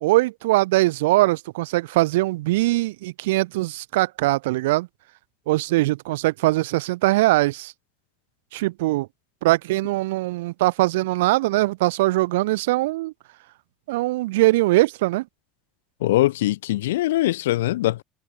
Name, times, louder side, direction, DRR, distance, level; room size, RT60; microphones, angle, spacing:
voice 1, 0.0-4.9 5.5-7.7 8.5-9.1 9.4-13.1 13.9-15.2, right 19 dB, 70° right, 1.1 m, -21 dB
voice 2, 16.0-18.0, left 15 dB, 70° left, 0.4 m, -22 dB
figure-of-eight pair, 60°, 0 cm